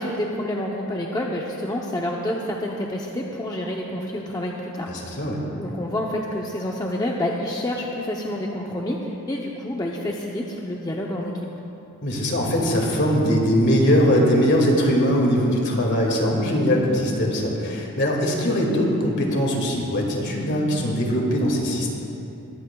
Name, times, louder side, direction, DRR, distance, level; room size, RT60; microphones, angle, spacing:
voice 1, 0.0-4.9 5.6-11.3, left 1 dB, 15° left, -1 dB, 0.7 m, -28 dB
voice 2, 4.9-5.4 12.0-21.9, equal, 55° left, -1 dB, 2.1 m, -21 dB
21.0 x 14.5 x 2.3 m, 2.8 s
head